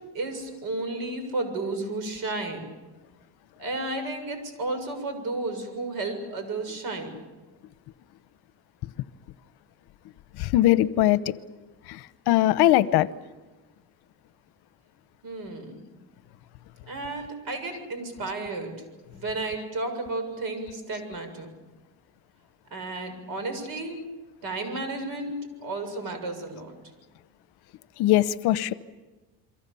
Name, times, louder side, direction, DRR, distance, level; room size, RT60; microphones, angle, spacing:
voice 1, 0.1-2.7 3.6-7.2 15.2-15.8 16.9-18.7 19.1-21.5 22.7-24.0 24.4-26.7, right 2 dB, 55° right, 6.9 m, -32 dB
voice 2, 10.4-11.3 11.9-13.1 28.0-28.7, left 14 dB, 65° left, 1.0 m, -21 dB
29.0 x 23.5 x 7.1 m
cardioid pair, 125°, 42 cm